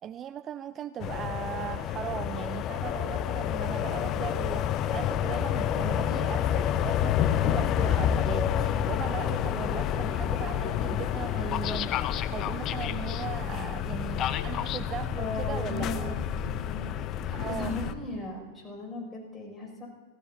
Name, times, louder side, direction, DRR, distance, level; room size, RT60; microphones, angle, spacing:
voice 1, 0.0-16.2 17.3-17.8, right 10 dB, 30° right, 0.4 m, -38 dB
sound 1, 1.0-17.9, left 10 dB, 35° left, 0.7 m, -29 dB
sound 2, 2.8-17.5, left 9 dB, 65° left, 0.9 m, -46 dB
voice 2, 15.2-17.0 17.2-19.9, left 2 dB, 15° left, 6.5 m, -37 dB
28.0 x 17.0 x 2.8 m
figure-of-eight pair, 90°, 0 cm